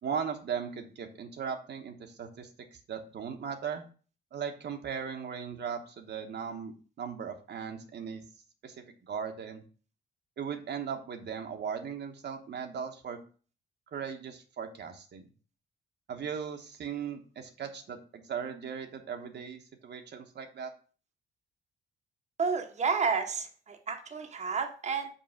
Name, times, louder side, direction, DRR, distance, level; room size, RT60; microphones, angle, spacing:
voice 1, 0.0-3.8 4.3-8.2 8.6-9.6 10.4-13.2 13.9-15.3 16.1-20.7, right 7 dB, 60° right, 5 dB, 1.2 m, -38 dB
voice 2, 22.4-25.1, right 5 dB, 35° right, 4 dB, 1.0 m, -31 dB
5.6 x 4.6 x 5.8 m, 0.39 s
cardioid pair, 90°, 20 cm